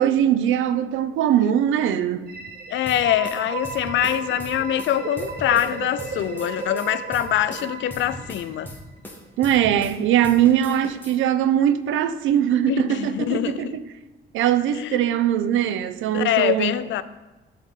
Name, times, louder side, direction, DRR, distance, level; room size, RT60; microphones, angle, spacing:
voice 1, 0.0-2.3 9.4-13.8 14.3-16.7, right 10 dB, 80° right, 0.5 m, -21 dB
sound 1, 2.2-9.0, right 4 dB, 50° right, 0.9 m, -34 dB
voice 2, 2.7-8.7 12.7-13.8 14.7-15.0 16.1-17.0, left 12 dB, 70° left, 0.4 m, -24 dB
sound 2, 2.9-5.7 6.0-10.0 10.2-11.2, left 1 dB, 10° left, 1.4 m, -39 dB
11.5 x 3.9 x 3.7 m
cardioid pair, 90°, 20 cm